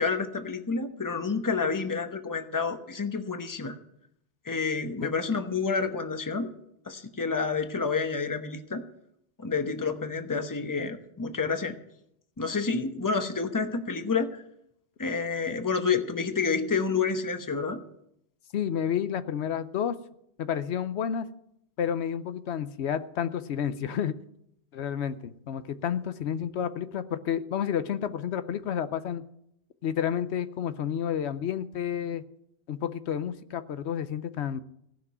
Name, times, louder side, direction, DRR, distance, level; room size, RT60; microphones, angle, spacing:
voice 1, 0.0-3.8 4.4-6.5 6.9-8.8 9.4-11.7 12.4-14.4 15.0-17.8, left 5 dB, 20° left, 8 dB, 0.9 m, -29 dB
voice 2, 18.5-19.9 20.4-21.3 21.8-24.1 24.7-29.2 29.8-32.2 32.7-34.6, left 9 dB, 85° left, 12 dB, 1.0 m, -30 dB
16.5 x 6.0 x 9.2 m, 0.77 s
omnidirectional pair, 1.1 m